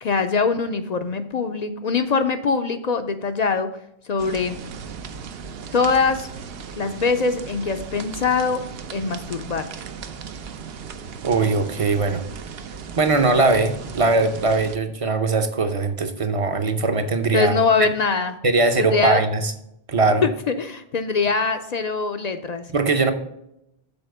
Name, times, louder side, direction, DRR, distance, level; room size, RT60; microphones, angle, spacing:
voice 1, 0.0-3.7 4.1-4.6 5.7-6.3 6.8-8.6 8.9-9.7 17.3-18.4 18.8-19.2 20.2-22.6, left 4 dB, 55° left, 8 dB, 0.5 m, -22 dB
sound 1, 4.2-14.8, right 6 dB, 70° right, 0.8 m, -37 dB
voice 2, 11.2-12.2 13.0-17.5 17.8-17.9 18.4-19.5 19.9-20.3 22.7-23.1, right 3 dB, 40° right, 8 dB, 0.6 m, -20 dB
7.0 x 4.2 x 6.5 m, 0.80 s
omnidirectional pair, 1.1 m